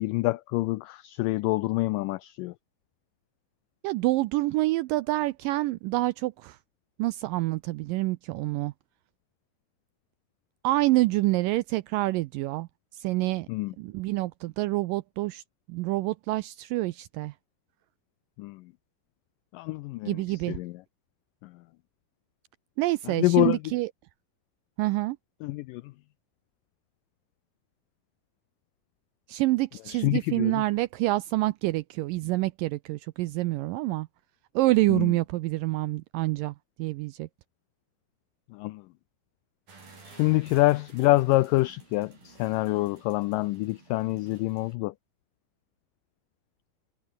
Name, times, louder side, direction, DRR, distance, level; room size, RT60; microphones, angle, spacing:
voice 1, 0.0-2.5 13.5-13.7 18.4-18.6 19.5-20.7 21.4-21.5 23.1-23.6 25.4-25.9 29.9-30.6 34.9-35.1 38.5-38.8 40.1-44.9, left 20 dB, 90° left, 1.9 m, -26 dB
voice 2, 3.8-6.6 7.0-8.7 10.6-12.7 12.9-13.5 13.8-15.4 15.7-17.3 20.0-20.6 22.8-23.9 24.8-25.2 29.3-34.1 34.6-37.3, right 19 dB, 85° right, 2.0 m, -27 dB
sound 1, 39.7-44.8, right 4 dB, 65° right, 9.8 m, -53 dB
omnidirectional pair, 4.4 m